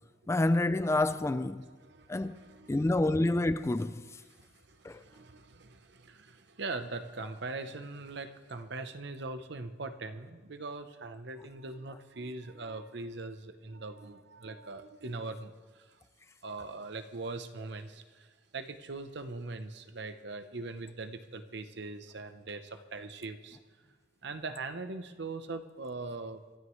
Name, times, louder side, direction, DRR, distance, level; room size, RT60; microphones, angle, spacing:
voice 1, 0.3-1.6 2.1-2.4 2.7-4.1 4.8-5.0, left 2 dB, 15° left, 0.3 m, -28 dB
voice 2, 1.6-2.9 4.3-16.0 16.4-23.6 24.2-26.4, right 3 dB, 60° right, 0.8 m, -41 dB
23.5 x 13.0 x 3.2 m
head